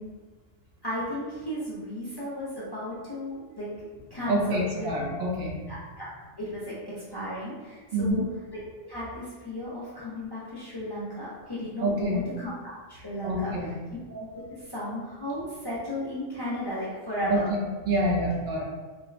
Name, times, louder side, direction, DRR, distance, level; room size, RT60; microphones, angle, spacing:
voice 1, 0.8-3.7 4.1-4.9 5.7-6.1 6.4-8.2 8.8-13.7 14.1-14.3 14.6-17.5, equal, 35° left, -9 dB, 0.4 m, -35 dB
voice 2, 4.3-5.6 7.9-8.2 11.8-12.2 13.2-13.7 17.3-17.6 17.9-18.6, right 1 dB, 75° right, -2 dB, 0.9 m, -26 dB
3.2 x 2.0 x 2.4 m, 1.3 s
omnidirectional pair, 1.1 m